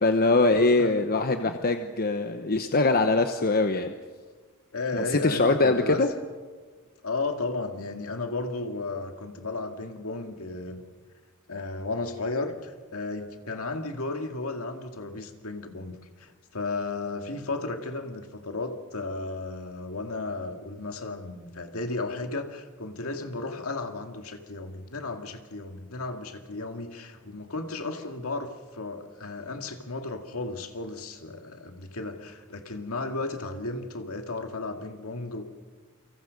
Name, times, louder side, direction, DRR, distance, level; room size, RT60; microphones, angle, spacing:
voice 1, 0.0-3.9 4.9-6.1, left 3 dB, 45° left, 7 dB, 1.0 m, -23 dB
voice 2, 4.7-6.0 7.0-10.8 11.5-35.4, left 3 dB, 70° left, 5 dB, 2.3 m, -34 dB
29.5 x 25.0 x 5.3 m, 1.5 s
head